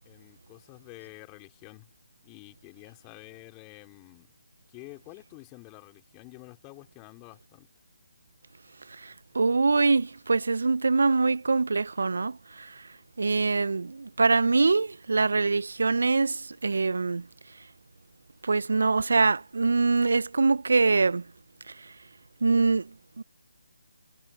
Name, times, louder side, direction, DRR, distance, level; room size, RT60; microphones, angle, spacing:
voice 1, 0.0-1.9 2.2-4.3 4.7-7.7, left 33 dB, 20° left, 4.2 m, -49 dB
voice 2, 8.9-12.9 13.2-17.3 18.4-21.3 21.7-21.9 22.4-23.2, right 3 dB, 65° right, 0.7 m, -24 dB
figure-of-eight pair, 150°, 0 cm